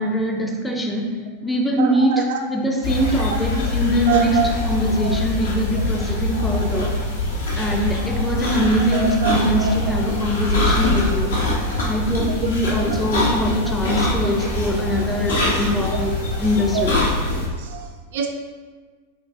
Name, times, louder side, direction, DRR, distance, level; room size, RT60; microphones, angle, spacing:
voice 1, 0.0-7.1 7.6-11.4 11.8-16.1 16.4-17.0, equal, 5° left, 0 dB, 0.5 m, -22 dB
voice 2, 1.8-2.4 3.2-3.3 4.1-4.5 5.0-5.2 8.8-9.7 12.4-12.5 12.8-12.9 13.6-13.7 16.7-16.8 17.6-18.3, right 7 dB, 55° right, 3 dB, 0.3 m, -25 dB
sound 1, 2.8-17.5, left 2 dB, 65° left, 0.8 m, -23 dB
5.6 x 2.3 x 2.4 m, 1.5 s
figure-of-eight pair, 90°, 0 cm